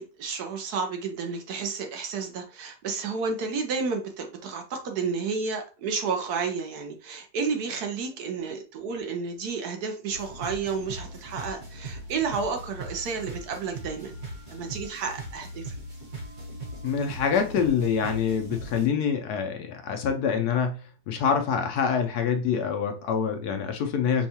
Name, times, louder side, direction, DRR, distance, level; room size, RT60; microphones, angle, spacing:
voice 1, 0.0-14.1 14.5-15.8, right 5 dB, 70° right, 1.1 m, -31 dB
sound 1, 10.1-18.9, right 1 dB, 40° right, 1.3 m, -40 dB
voice 2, 16.8-24.3, left 7 dB, 70° left, 1.0 m, -26 dB
5.3 x 2.3 x 2.7 m
omnidirectional pair, 1.9 m